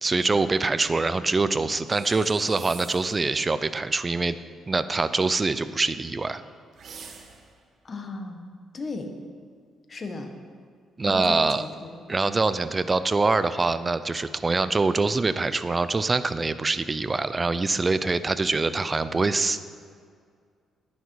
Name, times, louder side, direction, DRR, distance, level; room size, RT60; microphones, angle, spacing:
voice 1, 0.0-4.4 4.7-6.4 11.0-11.7 12.1-19.6, right 3 dB, 25° right, 13 dB, 0.5 m, -24 dB
sound 1, 1.9-3.2 6.7-7.6, right 6 dB, 60° right, 1.2 m, -45 dB
voice 2, 7.8-8.4 8.7-9.1 9.9-10.3 11.1-12.0, left 3 dB, 35° left, 5 dB, 1.4 m, -35 dB
11.0 x 10.0 x 4.8 m, 2.1 s
cardioid pair, 90°, 0 cm